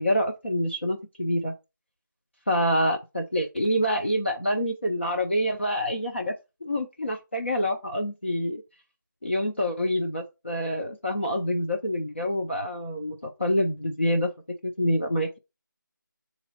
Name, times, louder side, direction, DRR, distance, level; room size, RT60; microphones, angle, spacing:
voice 1, 0.0-1.5 2.5-6.3 6.6-8.6 9.2-14.3 14.6-15.4, equal, 35° left, 0.6 m, -26 dB
6.8 x 4.1 x 4.0 m
figure-of-eight pair, 175°, 11 cm